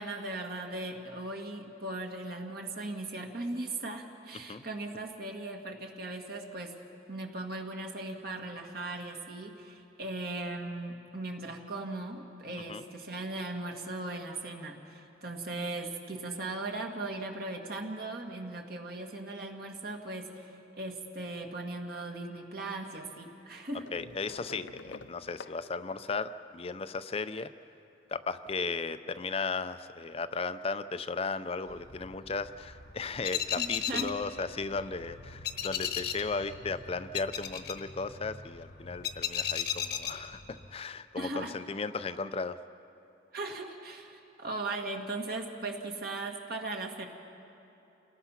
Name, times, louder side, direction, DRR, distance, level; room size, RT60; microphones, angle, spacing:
voice 1, 0.0-6.8 7.1-23.9 33.6-34.2 41.2-41.5 43.3-47.1, right 2 dB, 55° right, 2 dB, 2.1 m, -38 dB
sound 1, 23.9-27.1 28.3-29.2 30.3-30.4 30.7-30.8, left 4 dB, 85° left, 0.6 m, -50 dB
voice 2, 23.9-27.5 28.1-42.6, left 4 dB, 30° left, 12 dB, 0.5 m, -36 dB
sound 2, 31.7-40.7, left 9 dB, 60° left, 1.1 m, -37 dB
29.0 x 19.5 x 5.8 m, 2.9 s
head